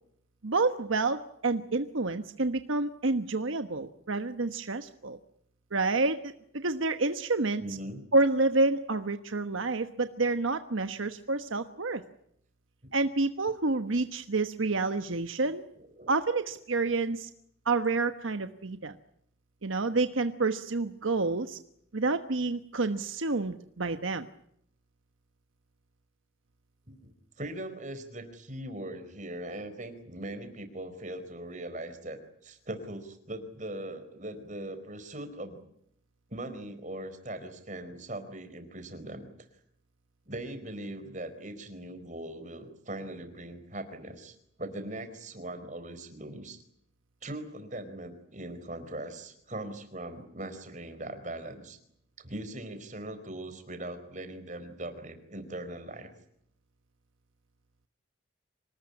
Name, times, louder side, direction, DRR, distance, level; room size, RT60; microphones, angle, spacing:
voice 1, 0.4-5.2 5.7-7.6 8.1-12.0 12.9-15.6 16.1-17.3 17.6-18.9 19.6-21.6 21.9-24.3, right 3 dB, 80° right, 9 dB, 1.2 m, -29 dB
voice 2, 7.6-8.0 12.8-12.9 15.7-16.1 26.9-35.6 36.3-39.5 40.3-46.6 47.2-51.8 52.2-56.1, right 1 dB, 40° right, 9 dB, 4.4 m, -40 dB
25.5 x 19.5 x 9.8 m, 0.73 s
head